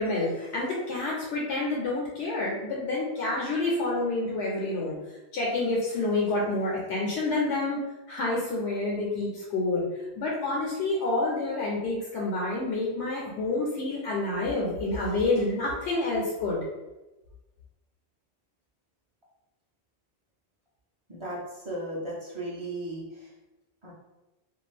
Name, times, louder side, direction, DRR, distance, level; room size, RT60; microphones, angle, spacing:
voice 1, 0.0-5.0 5.3-7.8 8.1-9.8 10.2-16.6, left 2 dB, 80° left, -4 dB, 0.9 m, -28 dB
voice 2, 21.1-21.4 21.7-23.0 23.8-23.9, right 1 dB, 35° right, -6 dB, 0.6 m, -35 dB
2.5 x 2.3 x 3.2 m, 1.0 s
omnidirectional pair, 1.1 m